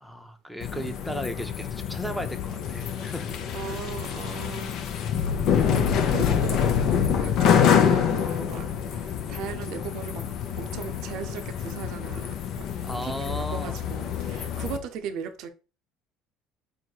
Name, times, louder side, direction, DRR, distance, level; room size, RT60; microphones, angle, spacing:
voice 1, 0.0-3.8 12.8-13.8, equal, ahead, 0.7 m, -36 dB
sound 1, 0.6-14.8, left 8 dB, 60° left, 0.6 m, -26 dB
voice 2, 3.5-4.8 5.5-6.6 6.9-10.2 10.6-12.6 13.0-15.5, right 7 dB, 65° right, 0.6 m, -37 dB
4.7 x 2.1 x 4.5 m
hypercardioid pair, 65°, 0 cm